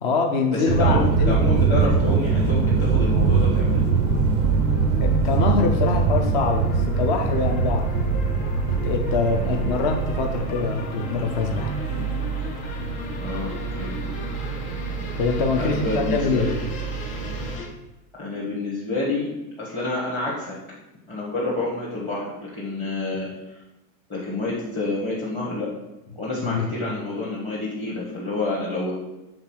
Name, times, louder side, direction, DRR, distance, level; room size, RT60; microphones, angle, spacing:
voice 1, 0.0-1.4 5.0-8.1 8.7-11.7 15.2-16.5 26.4-26.7, left 4 dB, 35° left, 3 dB, 0.4 m, -24 dB
voice 2, 0.5-3.8 9.4-9.7 13.2-14.0 15.6-16.5 18.1-20.6 21.1-23.6 24.1-25.7 26.2-28.9, left 2 dB, 15° left, -7 dB, 0.9 m, -28 dB
sound 1, 0.7-17.6, right 5 dB, 30° right, 0.4 m, -23 dB
sound 2, 2.4-17.7, left 2 dB, 75° left, 1.6 m, -37 dB
5.8 x 3.7 x 5.9 m, 0.98 s
supercardioid pair, 175°, 44 cm